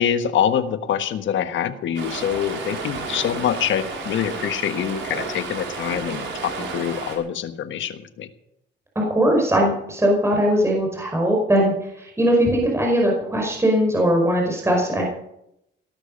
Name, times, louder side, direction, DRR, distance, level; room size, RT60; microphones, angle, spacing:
voice 1, 0.0-8.3, left 9 dB, 75° left, 9 dB, 1.4 m, -25 dB
Stream, 2.0-7.2, right 4 dB, 75° right, 5.3 m, -32 dB
voice 2, 8.9-15.0, equal, 15° right, -1 dB, 5.0 m, -20 dB
18.5 x 12.5 x 5.3 m, 0.81 s
cardioid pair, 90°, 20 cm